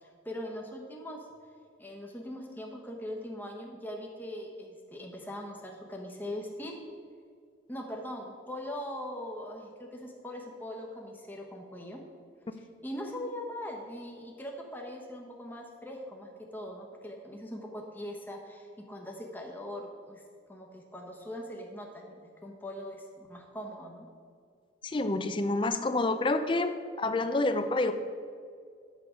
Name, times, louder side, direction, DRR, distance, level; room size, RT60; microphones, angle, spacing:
voice 1, 0.0-1.3 1.8-6.7 7.7-12.0 12.5-20.2 20.5-24.1, left 1 dB, 10° left, 0 dB, 0.9 m, -41 dB
voice 2, 24.8-26.7 27.0-27.9, left 2 dB, 25° left, 10 dB, 0.4 m, -28 dB
8.4 x 6.5 x 5.0 m, 2.2 s
head